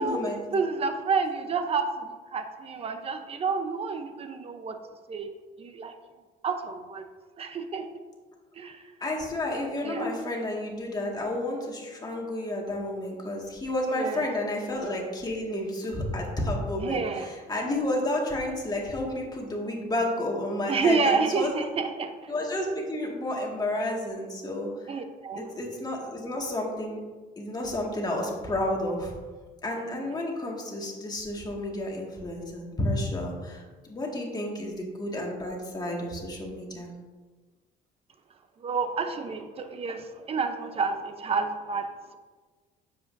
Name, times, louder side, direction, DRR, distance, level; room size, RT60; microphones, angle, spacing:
voice 1, 0.0-0.5 9.0-21.5 22.3-24.9 25.4-27.0 27.4-29.1 29.6-33.6 33.9-36.9, left 1 dB, 25° left, -2 dB, 2.0 m, -31 dB
voice 2, 0.5-4.8 5.1-5.3 5.6-5.9 6.4-7.1 7.4-7.9 8.5-8.9 9.8-10.1 13.9-14.3 16.8-17.3 20.7-22.3 24.9-25.5 38.6-42.2, right 5 dB, 35° right, 7 dB, 0.8 m, -29 dB
9.6 x 7.7 x 2.7 m, 1.3 s
cardioid pair, 110°, 17 cm